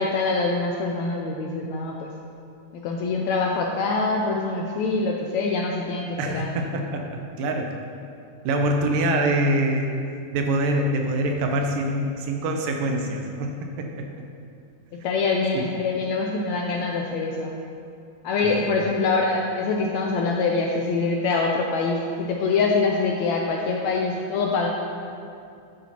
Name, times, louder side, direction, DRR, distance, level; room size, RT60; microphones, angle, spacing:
voice 1, 0.0-2.1 2.7-6.5 9.1-9.3 15.0-17.5 18.2-24.7, left 4 dB, 80° left, 0 dB, 1.6 m, -24 dB
voice 2, 6.2-7.8 8.4-9.9 10.3-14.1 15.5-15.6 18.4-18.7, right 1 dB, 90° right, 2 dB, 2.5 m, -25 dB
12.5 x 8.2 x 2.9 m, 2.4 s
omnidirectional pair, 3.8 m